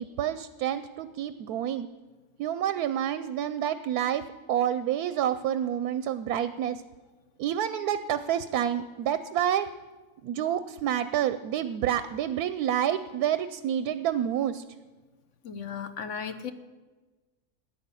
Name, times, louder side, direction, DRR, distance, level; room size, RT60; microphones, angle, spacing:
voice 1, 0.0-1.9 2.4-4.2 4.5-6.8 7.4-9.7 10.2-14.6, right 10 dB, 90° right, 13 dB, 1.1 m, -28 dB
voice 2, 15.4-16.5, left 7 dB, 60° left, 10 dB, 1.1 m, -35 dB
13.5 x 9.7 x 8.3 m, 1.3 s
omnidirectional pair, 1.6 m